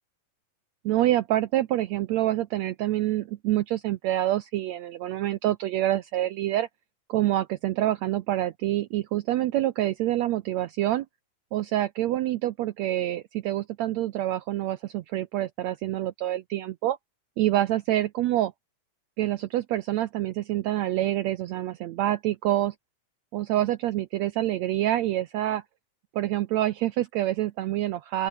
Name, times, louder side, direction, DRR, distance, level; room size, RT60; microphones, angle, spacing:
voice 1, 0.8-6.7 7.1-11.1 11.5-17.0 17.4-18.5 19.2-22.7 23.3-25.6 26.1-28.3, right 14 dB, 80° right, 1.5 m, -26 dB
open air
omnidirectional pair, 4.0 m